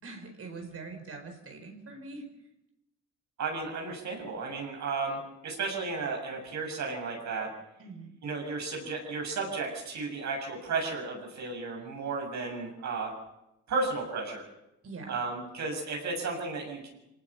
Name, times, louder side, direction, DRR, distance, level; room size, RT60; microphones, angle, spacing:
voice 1, 0.0-2.3 7.8-8.1 14.8-15.1, right 3 dB, 50° right, 4 dB, 4.6 m, -43 dB
voice 2, 3.4-7.5 8.2-13.1 13.7-14.4 15.1-16.9, right 4 dB, 65° right, 1 dB, 7.1 m, -33 dB
23.5 x 19.0 x 7.0 m, 0.88 s
cardioid pair, 90°, 30 cm